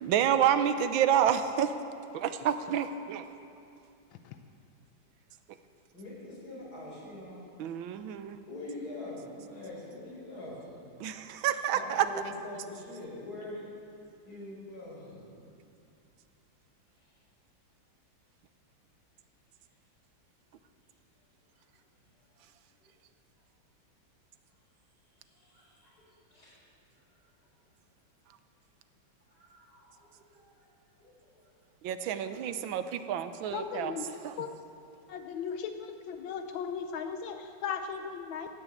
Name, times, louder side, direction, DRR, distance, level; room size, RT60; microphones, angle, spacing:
voice 1, 0.0-1.7 2.1-3.3 7.6-8.4 11.0-12.1 31.8-33.9 34.2-34.3, right 9 dB, 90° right, 10 dB, 1.5 m, -28 dB
voice 2, 5.9-7.4 8.4-10.7 11.7-13.6 14.2-15.4 25.3-26.0 26.3-26.6 29.3-30.0 30.3-30.5 31.0-31.5 32.2-32.3, left 1 dB, 50° left, -4 dB, 5.2 m, -44 dB
voice 3, 33.5-34.5 35.1-38.5, left 6 dB, 85° left, 7 dB, 1.5 m, -37 dB
14.0 x 9.7 x 8.6 m, 2.5 s
omnidirectional pair, 2.1 m